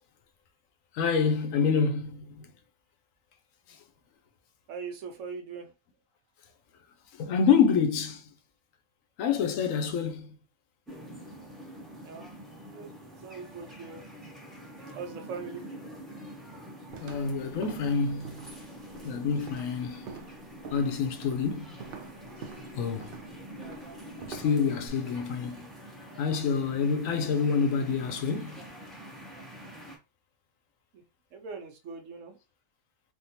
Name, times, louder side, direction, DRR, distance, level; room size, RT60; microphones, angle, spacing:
voice 1, 0.9-2.4 7.2-8.2 9.2-10.3 17.0-18.5 19.0-20.1 20.7-21.7 22.8-23.2 24.3-25.7 26.2-28.6, left 6 dB, 70° left, 0.9 m, -27 dB
voice 2, 4.7-5.7 12.0-12.3 12.6-12.9 13.2-14.0 14.9-15.7 30.9-31.0 31.3-32.4, right 5 dB, 65° right, 1.0 m, -40 dB
sound 1, 10.9-30.0, equal, ahead, 0.5 m, -46 dB
sound 2, 16.9-24.9, right 5 dB, 80° right, 0.4 m, -47 dB
3.5 x 2.3 x 2.7 m
omnidirectional pair, 1.5 m